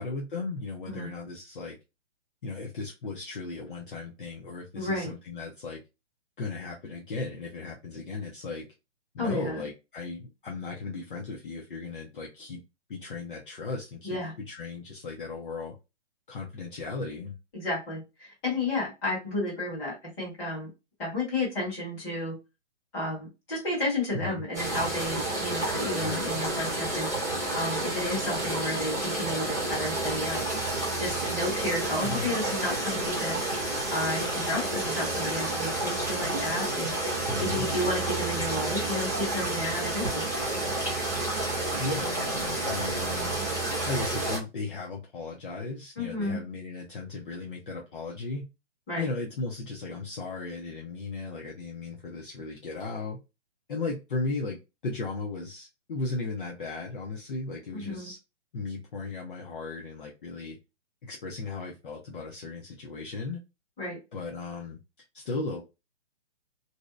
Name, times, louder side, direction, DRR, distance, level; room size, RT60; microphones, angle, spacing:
voice 1, 0.0-1.8 2.4-5.8 6.4-8.7 9.1-12.6 12.9-14.2 14.5-15.7 16.3-17.3 24.1-24.4 26.0-26.3 32.0-32.4 37.2-37.7 41.5-43.3 43.9-48.5 49.0-53.2 53.7-54.6 54.8-58.2 58.5-60.6 61.0-63.4 64.1-64.8 65.1-65.6, left 3 dB, 45° left, -1 dB, 0.5 m, -36 dB
voice 2, 4.7-5.1 9.2-9.6 14.0-14.3 17.5-20.7 21.0-22.3 22.9-27.1 27.5-30.5 31.0-33.4 33.9-36.9 37.4-40.3 46.0-46.4 48.9-49.1 57.7-58.1 63.8-64.0, left 1 dB, 15° left, -6 dB, 1.2 m, -32 dB
sound 1, 24.5-44.4, right 2 dB, 15° right, 0.4 m, -30 dB
2.6 x 2.0 x 2.3 m, 0.26 s
hypercardioid pair, 160°, 36 cm